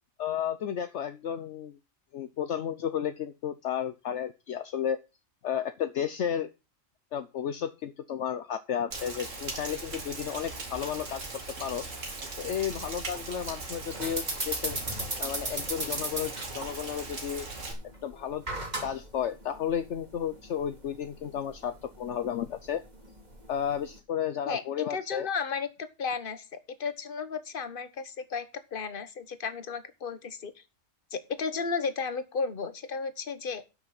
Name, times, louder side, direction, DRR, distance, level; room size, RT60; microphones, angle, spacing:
voice 1, 0.2-1.8 2.1-5.0 5.4-6.5 7.1-11.3 11.6-11.9 12.4-14.8 15.2-17.5 18.0-18.4 18.8-22.8 23.5-25.3, left 9 dB, 65° left, 10 dB, 1.0 m, -33 dB
Rain, 8.9-17.7, right 2 dB, 75° right, 2.6 m, -39 dB
sound 1, 13.9-24.0, right 1 dB, 35° right, 2.7 m, -38 dB
voice 2, 24.9-25.7 26.0-26.4 26.8-28.5 28.7-30.5 31.1-33.6, left 5 dB, 45° left, 11 dB, 1.3 m, -33 dB
12.0 x 6.3 x 5.9 m, 0.29 s
omnidirectional pair, 1.3 m